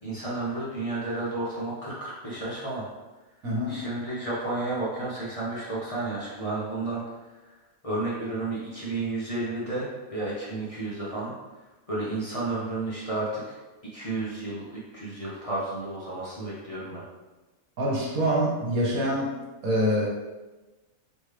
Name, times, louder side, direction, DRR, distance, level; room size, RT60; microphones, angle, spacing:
voice 1, 0.0-2.8 3.7-7.0 7.8-11.3 11.9-13.6 13.9-17.0, right 2 dB, 30° left, -8 dB, 0.9 m, -32 dB
voice 2, 3.4-3.8 17.8-19.3 19.6-20.1, equal, 75° right, -3 dB, 1.5 m, -25 dB
4.1 x 3.4 x 3.3 m, 1.1 s
omnidirectional pair, 1.5 m